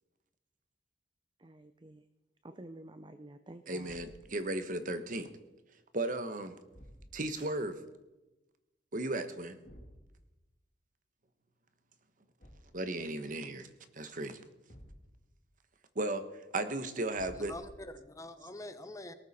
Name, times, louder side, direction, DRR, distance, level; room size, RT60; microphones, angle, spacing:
voice 1, 1.4-2.0 2.4-4.0, right 1 dB, 25° right, 0.6 m, -50 dB
voice 2, 3.7-5.3 5.9-6.6 7.1-7.8 8.9-9.6 12.7-14.4 15.9-17.5, right 2 dB, 45° right, 1.2 m, -35 dB
Thump thud, 3.8-4.4 6.7-7.4 9.7-10.1 12.4-12.9 14.7-15.3 17.1-18.1, equal, 45° left, 2.2 m, -54 dB
sound 1, 7.2-7.8, right 3 dB, 70° right, 3.1 m, -61 dB
voice 3, 17.3-19.1, left 1 dB, 20° left, 0.9 m, -45 dB
18.5 x 13.5 x 4.3 m
head